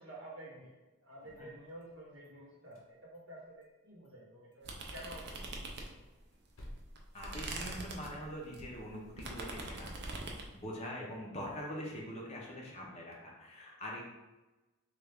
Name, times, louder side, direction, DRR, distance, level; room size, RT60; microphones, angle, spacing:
voice 1, 0.0-6.1 10.9-11.0, right 1 dB, 65° right, -5 dB, 1.1 m, -51 dB
sound 1, 1.1-2.3 2.6-3.8 4.0-4.1 4.5-4.7 4.9-5.0 5.4-8.0, equal, 65° left, 0.7 m, -56 dB
sound 2, 4.6-6.2 6.6-10.5, right 2 dB, 50° right, 0.4 m, -43 dB
voice 2, 7.1-9.9 10.3-14.0, equal, 30° left, -2 dB, 0.6 m, -43 dB
3.2 x 2.3 x 3.3 m, 1.1 s
head